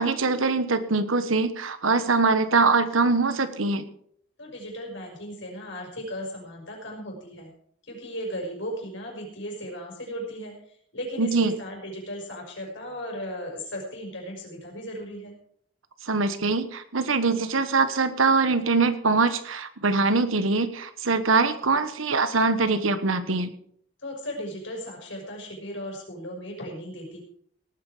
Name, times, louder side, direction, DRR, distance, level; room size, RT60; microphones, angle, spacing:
voice 1, 0.0-3.8 11.2-11.5 16.1-23.5, right 4 dB, 85° right, 11 dB, 1.2 m, -23 dB
voice 2, 4.4-7.5 7.8-15.3 24.0-27.2, equal, 65° left, 0 dB, 5.9 m, -36 dB
18.0 x 9.2 x 5.0 m, 0.64 s
head